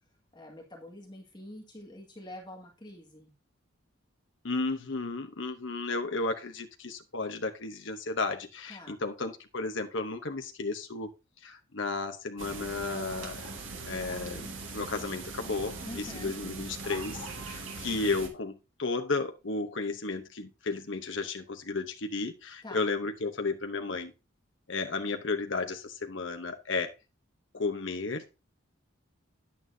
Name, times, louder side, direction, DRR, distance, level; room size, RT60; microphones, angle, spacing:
voice 1, 0.3-3.3 8.7-9.0 15.8-16.3 22.6-22.9, left 1 dB, 20° left, 0 dB, 2.0 m, -46 dB
voice 2, 4.4-11.1 11.4-13.5 13.8-24.1 24.7-26.9 27.5-28.2, left 3 dB, 65° left, 6 dB, 0.9 m, -33 dB
sound 1, 12.4-18.3, right 3 dB, 70° right, 2.0 m, -40 dB
9.3 x 8.6 x 2.7 m, 0.27 s
head